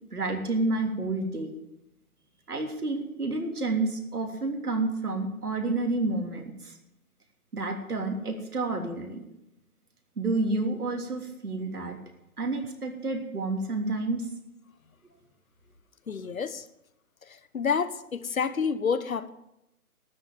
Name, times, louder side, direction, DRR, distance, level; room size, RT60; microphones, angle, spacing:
voice 1, 0.1-1.5 2.5-6.8 7.5-9.2 10.2-12.0 12.4-14.3, right 2 dB, 85° right, 3 dB, 3.3 m, -29 dB
voice 2, 16.1-16.6 17.5-19.3, left 6 dB, 65° left, 14 dB, 1.1 m, -28 dB
12.5 x 8.0 x 9.1 m, 0.88 s
figure-of-eight pair, 160°, 44 cm